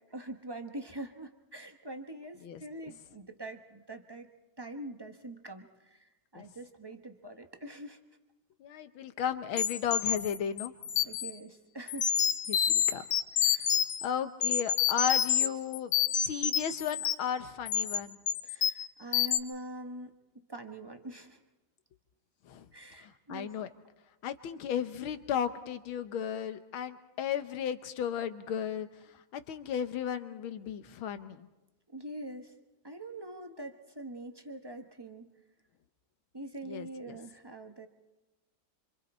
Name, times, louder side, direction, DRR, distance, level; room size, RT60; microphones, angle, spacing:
voice 1, 0.0-4.3 4.6-8.0 11.0-12.2 13.4-13.7 18.4-20.1 20.5-21.4 22.7-23.5 31.9-32.5 32.8-35.3 36.3-37.9, right 1 dB, 20° right, 5 dB, 0.7 m, -44 dB
voice 2, 8.6-11.1 12.5-13.1 14.0-15.9 16.2-18.2 22.5-22.7 23.0-23.7 24.2-28.9 29.3-31.5 36.7-37.2, left 8 dB, 90° left, 10 dB, 1.8 m, -35 dB
sound 1, 9.6-11.3 11.9-14.1 14.4-15.5 15.7-17.3 17.7-18.0 18.3-18.9 19.1-19.4, left 8 dB, 55° left, 1.3 m, -28 dB
26.5 x 26.5 x 4.3 m, 1.0 s
omnidirectional pair, 2.2 m